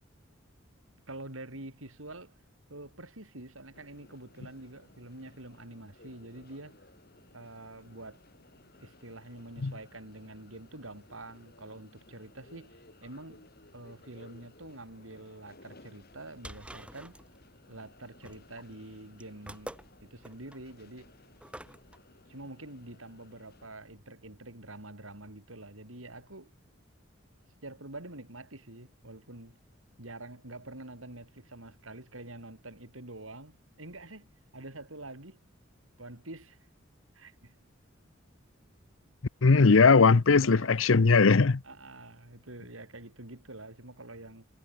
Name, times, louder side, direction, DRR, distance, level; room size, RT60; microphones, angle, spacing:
voice 1, 1.1-2.3 2.7-6.8 7.3-8.2 8.8-13.4 13.7-17.2 17.7-21.1 22.3-26.5 27.6-29.6 30.0-34.3 34.5-35.4 36.0-36.6 37.1-37.5 40.4-40.7 41.6-44.4, right 2 dB, 90° right, 6.2 m, -46 dB
sound 1, 3.7-23.7, left 2 dB, 50° left, 5.2 m, -59 dB
sound 2, 16.0-22.0, right 1 dB, 5° right, 3.6 m, -48 dB
voice 2, 39.4-41.6, left 4 dB, 75° left, 0.7 m, -20 dB
head